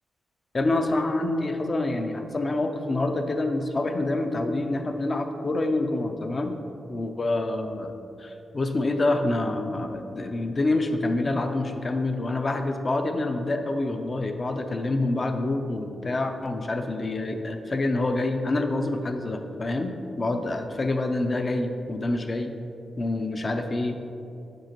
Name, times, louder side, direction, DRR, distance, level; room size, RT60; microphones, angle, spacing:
voice 1, 0.5-6.5 6.9-7.9 8.2-22.5 23.0-24.0, left 2 dB, 30° left, 6 dB, 0.5 m, -27 dB
7.7 x 7.1 x 3.0 m, 2.7 s
wide cardioid pair, 140°, 0 cm